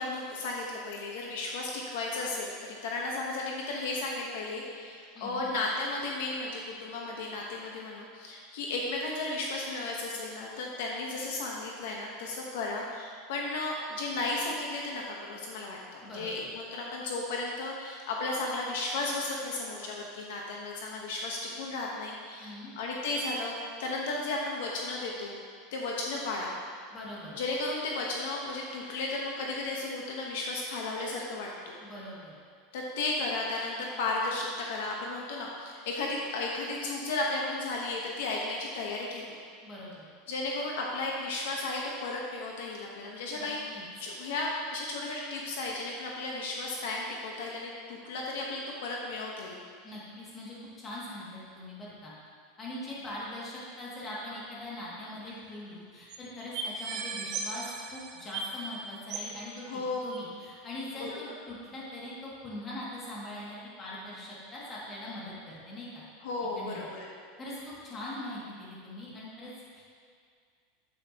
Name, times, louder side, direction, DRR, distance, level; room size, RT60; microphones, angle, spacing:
voice 1, 0.0-25.4 25.7-26.5 27.3-31.7 32.7-39.4 40.3-49.6 59.7-60.0 61.0-61.2 66.2-67.1, left 2 dB, 75° left, -1 dB, 1.1 m, -34 dB
voice 2, 5.1-5.5 16.0-16.3 22.4-22.7 26.9-27.3 31.8-32.3 39.6-40.0 43.3-43.5 43.7-43.9 49.8-52.1 52.6-66.0 66.6-66.8 67.4-69.8, left 1 dB, 20° left, -7 dB, 2.3 m, -42 dB
sound 1, 55.3-55.4 55.5-55.6 56.1-56.2 56.5-58.7 59.1-59.4 60.1-60.2, right 4 dB, 45° right, 0.9 m, -37 dB
9.2 x 8.2 x 3.0 m, 2.1 s
supercardioid pair, 155°, 0 cm